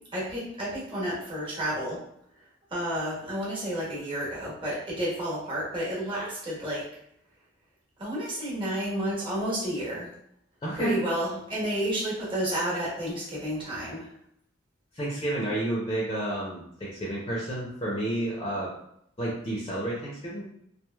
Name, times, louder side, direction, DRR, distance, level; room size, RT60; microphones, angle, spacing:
voice 1, 0.1-2.0 2.7-6.9 8.0-10.1 10.8-14.1, equal, 25° right, -6 dB, 1.1 m, -31 dB
voice 2, 10.6-11.0 14.9-18.7 19.2-20.5, right 1 dB, 25° left, -5 dB, 0.6 m, -30 dB
3.1 x 2.5 x 2.2 m, 0.73 s
head